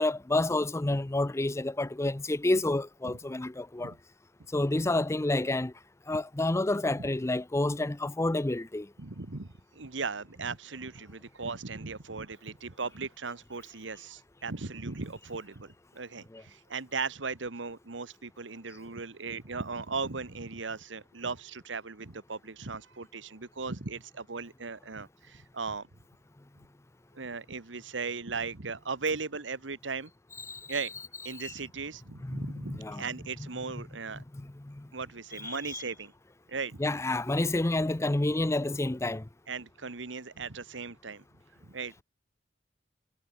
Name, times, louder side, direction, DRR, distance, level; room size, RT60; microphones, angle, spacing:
voice 1, 0.0-3.9 4.5-5.7 6.1-8.9 16.3-16.4 30.5-30.7 31.4-31.5 32.2-33.0 34.2-34.9 35.4-35.8 36.8-39.3, left 2 dB, 15° left, 0.5 m, -29 dB
voice 2, 9.0-25.9 27.1-30.1 30.7-30.9 31.2-34.2 34.9-36.1 36.5-36.8 39.5-41.2 41.7-42.0, right 4 dB, 85° right, 1.4 m, -37 dB
head